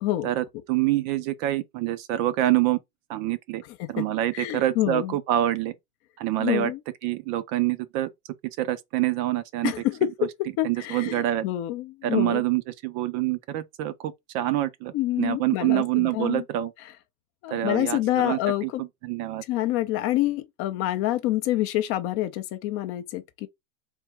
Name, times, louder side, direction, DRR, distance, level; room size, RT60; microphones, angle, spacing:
voice 1, 0.2-2.8 3.1-3.6 3.9-5.7 6.2-6.7 7.0-8.1 8.6-9.7 10.6-11.4 12.0-16.7 17.5-19.4, right 14 dB, 40° right, 0.4 m, -26 dB
voice 2, 3.7-4.1 4.3-5.1 6.4-6.8 9.6-12.4 14.9-16.4 17.4-18.8 19.4-23.5, left 14 dB, 35° left, 0.4 m, -27 dB
3.6 x 2.2 x 4.3 m
supercardioid pair, 125°, 42 cm